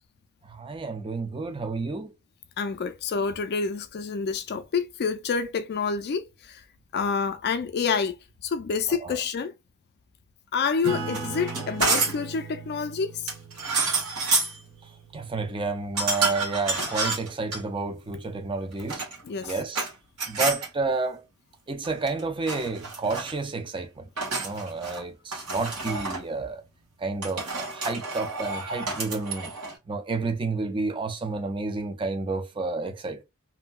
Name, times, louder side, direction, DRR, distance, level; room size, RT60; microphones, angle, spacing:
voice 1, 0.5-2.1 8.9-9.2 15.1-19.0 19.4-19.9 20.3-21.2 21.7-24.1 24.4-26.6 27.0-29.5 29.9-33.2, right 3 dB, 20° right, 0.5 m, -30 dB
voice 2, 2.6-6.6 6.9-8.2 8.4-9.5 10.5-13.3 19.2-19.5, left 5 dB, 45° left, 0.4 m, -28 dB
Acoustic guitar / Strum, 10.8-15.8, right 3 dB, 70° right, 0.8 m, -38 dB
sound 1, 11.1-12.3 13.3-14.6 16.0-17.6 18.7-19.9 20.2-20.7 21.8-22.2 22.5-23.3 24.2-25.0 25.3-26.2 27.2-29.8, right 3 dB, 85° right, 1.5 m, -29 dB
2.8 x 2.6 x 2.2 m
head